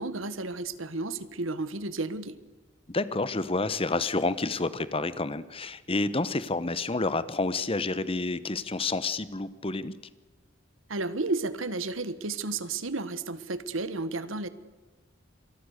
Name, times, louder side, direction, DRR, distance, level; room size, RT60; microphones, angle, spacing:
voice 1, 0.0-2.4 10.9-14.5, right 3 dB, 80° right, 14 dB, 1.6 m, -32 dB
voice 2, 2.9-9.9, left 3 dB, 30° left, 15 dB, 1.1 m, -29 dB
27.0 x 21.0 x 6.6 m, 1.2 s
head